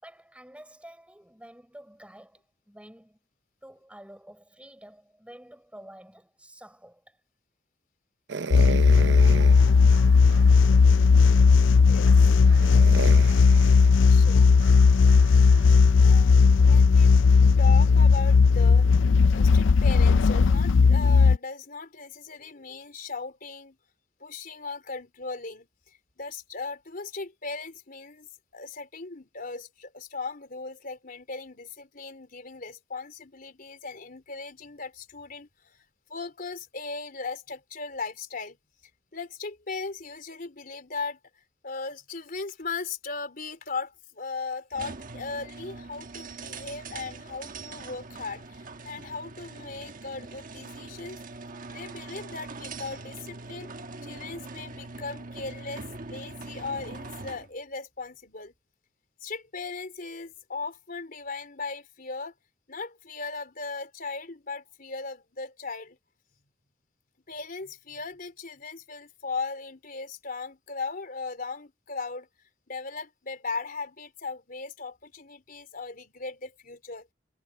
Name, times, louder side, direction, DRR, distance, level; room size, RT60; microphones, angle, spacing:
voice 1, 0.0-3.2 3.6-7.2 13.1-13.3, right 1 dB, 5° right, 6.3 m, -49 dB
sound 1, 8.3-10.7 11.3-11.4 12.0-15.8, right 4 dB, 70° right, 0.7 m, -36 dB
sound 2, 8.5-21.4, left 5 dB, 85° left, 0.4 m, -17 dB
voice 2, 11.9-12.4 14.1-14.6 16.0-17.1 17.6-23.8 24.2-35.8 36.1-38.6 39.1-41.2 41.6-48.6 48.8-51.2 51.7-53.7 54.0-58.5 59.2-62.3 62.7-66.0 67.3-72.3 72.7-77.1, left 4 dB, 50° left, 3.7 m, -38 dB
sound 3, 44.7-57.5, right 3 dB, 45° right, 1.2 m, -42 dB
head